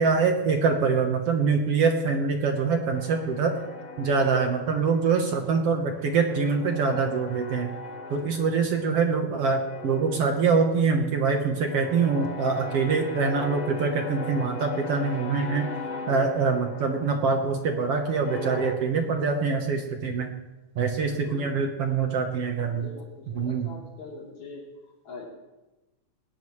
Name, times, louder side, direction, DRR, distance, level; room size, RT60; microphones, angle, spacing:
voice 1, 0.0-3.5 4.0-7.7 8.1-15.7 16.1-20.3 20.8-22.9 23.4-23.7, right 5 dB, 60° right, 4 dB, 2.1 m, -24 dB
sound 1, 2.9-5.4 5.7-9.3 9.6-18.7, left 3 dB, 45° left, 1.3 m, -39 dB
voice 2, 21.0-21.4 22.7-25.3, left 3 dB, 70° left, -3 dB, 4.9 m, -43 dB
20.0 x 18.0 x 3.3 m, 1.0 s
omnidirectional pair, 3.4 m